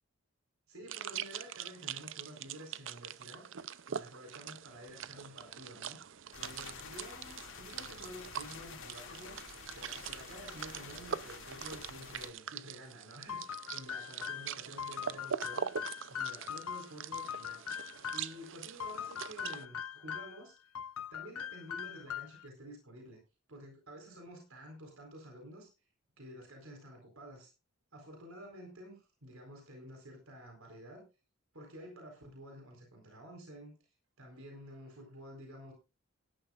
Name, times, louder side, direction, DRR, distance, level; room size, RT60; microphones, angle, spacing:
voice 1, 0.7-3.5 3.9-6.0 6.4-9.4 9.7-15.7 16.1-17.6 18.1-20.5 21.1-23.2 23.5-25.7 26.2-27.5 27.9-31.0 31.5-33.7 34.2-35.7, equal, 80° right, 2 dB, 4.2 m, -50 dB
sound 1, 0.9-19.7, right 8 dB, 60° right, 0.6 m, -43 dB
sound 2, 6.3-12.3, left 5 dB, 65° left, 2.4 m, -49 dB
sound 3, 13.3-18.4 18.8-20.4 20.7-22.5, left 8 dB, 85° left, 0.6 m, -41 dB
17.5 x 12.0 x 2.5 m, 0.30 s
head